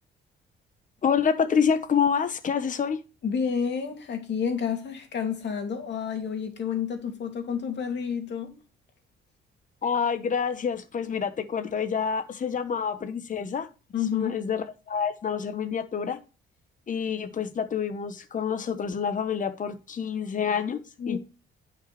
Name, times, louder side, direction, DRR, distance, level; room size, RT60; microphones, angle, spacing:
voice 1, 1.0-3.0 9.8-13.7 14.1-16.2 16.9-20.8 21.1-21.2, left 6 dB, 40° left, 1.1 m, -27 dB
voice 2, 3.2-8.6 13.9-14.4 21.0-21.2, left 7 dB, 60° left, 2.6 m, -30 dB
10.0 x 5.7 x 3.2 m
cardioid pair, 90°, 20 cm